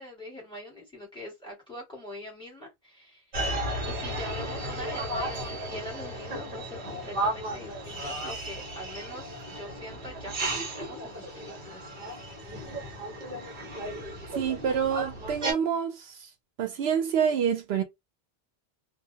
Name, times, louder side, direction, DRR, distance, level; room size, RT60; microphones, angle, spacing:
voice 1, 0.0-3.2 3.8-11.8, left 1 dB, 5° left, 1.4 m, -43 dB
sound 1, 3.3-15.5, right 1 dB, 50° right, 1.0 m, -34 dB
voice 2, 14.3-16.3 16.6-17.8, right 7 dB, 75° right, 0.8 m, -27 dB
2.3 x 2.1 x 2.7 m
omnidirectional pair, 1.1 m